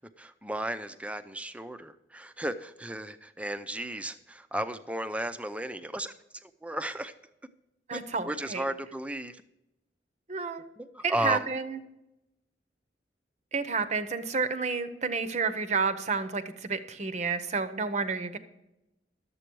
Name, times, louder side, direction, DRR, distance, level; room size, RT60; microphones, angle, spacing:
voice 1, 0.0-7.1 7.9-9.4 10.8-11.5, right 1 dB, 5° right, 10 dB, 0.5 m, -34 dB
voice 2, 7.9-8.6 10.3-10.6 11.0-11.8 13.5-18.4, right 4 dB, 40° right, 10 dB, 0.7 m, -30 dB
11.5 x 7.7 x 4.6 m, 0.91 s
head